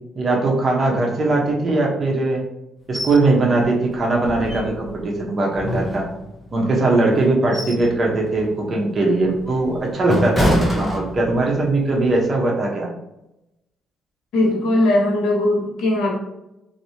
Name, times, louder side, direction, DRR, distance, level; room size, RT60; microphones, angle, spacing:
voice 1, 0.1-2.4 2.9-6.1 6.5-12.9, right 2 dB, 40° right, -1 dB, 1.0 m, -20 dB
sound 1, 2.9-3.2 3.6-3.7 4.2-5.0 5.5-6.5 7.1-7.9 8.3-8.6 9.1-11.6 11.9-12.1, left 1 dB, 20° left, 0.9 m, -25 dB
voice 2, 14.3-16.1, left 1 dB, 75° left, -1 dB, 1.1 m, -19 dB
2.9 x 2.8 x 2.8 m, 0.91 s
cardioid pair, 90°, 0 cm